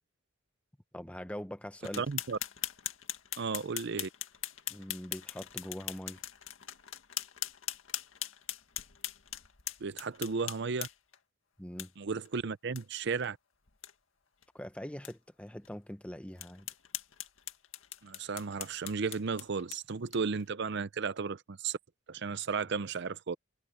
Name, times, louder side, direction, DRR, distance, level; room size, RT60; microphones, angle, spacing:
voice 1, 0.9-2.0 4.7-6.2 11.6-11.9 14.5-16.7, equal, 5° left, 1.0 m, -42 dB
sound 1, 1.8-11.2 11.8-11.9 12.2-12.3 12.7-12.8 13.2-13.3 13.7-13.9 14.4-14.5 15.0-15.1 15.6-15.7 16.4-20.4, left 12 dB, 90° left, 2.0 m, -41 dB
voice 2, 2.0-2.4 3.4-4.1 9.8-10.9 12.0-13.4 18.0-21.8 22.1-23.4, right 5 dB, 60° right, 0.6 m, -34 dB
head